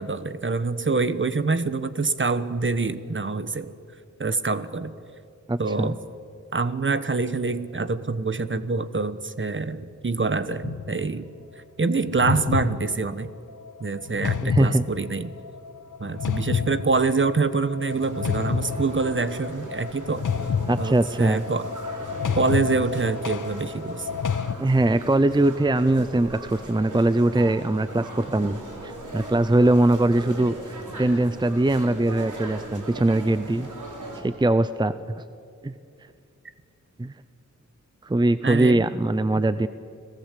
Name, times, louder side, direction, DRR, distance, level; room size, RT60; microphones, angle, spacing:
voice 1, 0.0-3.7 4.2-5.0 5.6-6.0 6.5-11.3 11.8-13.3 13.8-15.3 16.0-20.3 20.8-21.7 22.3-24.1 38.4-38.9, right 4 dB, 40° right, 12 dB, 1.2 m, -25 dB
voice 2, 5.5-5.9 14.4-14.8 20.7-21.5 24.6-33.7 34.2-35.2 35.6-35.7 37.0-37.1 38.0-39.7, right 2 dB, 15° right, 13 dB, 0.7 m, -22 dB
sound 1, 10.6-11.0 12.0-24.5, left 6 dB, 85° left, 0.9 m, -30 dB
sound 2, 17.9-34.2, right 2 dB, 75° right, 4.8 m, -39 dB
30.0 x 18.0 x 8.4 m, 2.4 s
wide cardioid pair, 90°, 30 cm